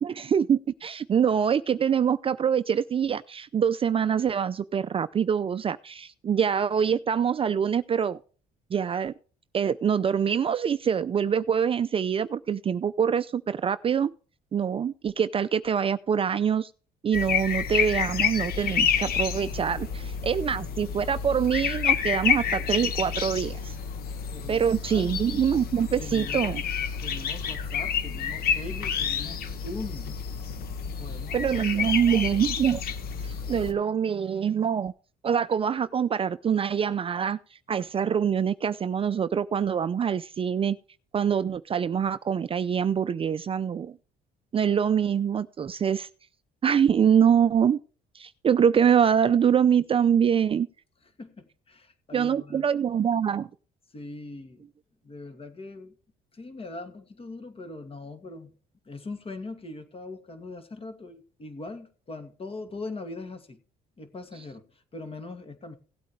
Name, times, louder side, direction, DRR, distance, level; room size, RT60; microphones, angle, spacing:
voice 1, 0.0-8.2 8.7-9.1 9.5-14.1 14.5-16.7 17.0-23.7 24.5-26.6 31.3-32.8 33.5-34.9 35.2-37.4 37.7-40.8 41.1-43.9 44.5-46.1 46.6-47.8 48.1-50.7 52.1-53.5, right 8 dB, 35° right, 0.5 m, -24 dB
sound 1, 17.1-33.7, left 7 dB, 65° left, 1.6 m, -29 dB
voice 2, 24.3-25.2 26.0-26.6 27.0-30.1 31.0-32.3 51.2-52.7 53.9-54.7 55.0-56.0 56.3-58.5 58.9-63.6 64.0-65.7, left 2 dB, 35° left, 2.4 m, -41 dB
17.0 x 8.3 x 3.3 m
cardioid pair, 110°, 17 cm